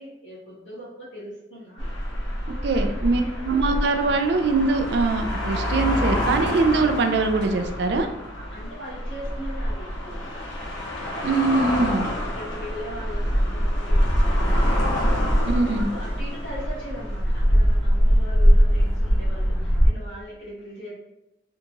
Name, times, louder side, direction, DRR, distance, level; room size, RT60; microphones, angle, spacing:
voice 1, 0.0-1.9 2.4-3.7 8.3-10.4 11.0-14.7 15.1-20.9, equal, 75° left, -6 dB, 1.4 m, -40 dB
sound 1, 1.8-19.9, equal, 90° left, 0.9 m, -23 dB
voice 2, 2.6-8.1 11.2-12.1 15.5-15.9, right 3 dB, 60° right, 6 dB, 0.3 m, -22 dB
3.5 x 2.9 x 2.5 m, 0.93 s
head